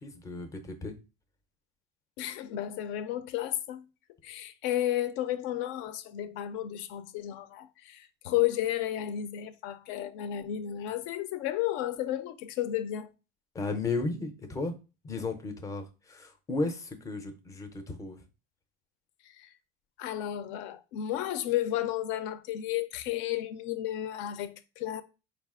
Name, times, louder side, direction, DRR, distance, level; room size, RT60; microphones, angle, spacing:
voice 1, 0.0-1.0 13.5-14.7 15.0-18.2, left 3 dB, 15° left, 0.5 m, -34 dB
voice 2, 2.2-3.9 4.2-13.1 19.4-19.5 20.0-25.0, left 12 dB, 65° left, 0.5 m, -32 dB
4.6 x 2.4 x 3.5 m
cardioid pair, 170°, 21 cm